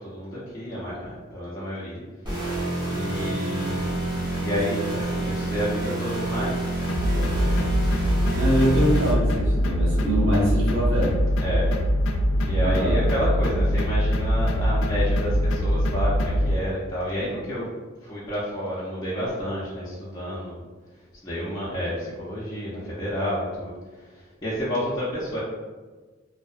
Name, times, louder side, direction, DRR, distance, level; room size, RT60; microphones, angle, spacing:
voice 1, 0.0-2.0 2.9-6.7 7.1-7.7 11.4-11.7 12.4-17.7 18.0-20.6 21.2-25.4, equal, 20° left, -9 dB, 0.4 m, -30 dB
sound 1, 2.2-9.1, right 2 dB, 20° right, 0.6 m, -28 dB
sound 2, 6.9-16.5, equal, 90° left, 0.3 m, -23 dB
voice 2, 8.3-11.2 12.6-13.0, equal, 65° right, -5 dB, 0.8 m, -24 dB
2.6 x 2.0 x 2.4 m, 1.3 s
head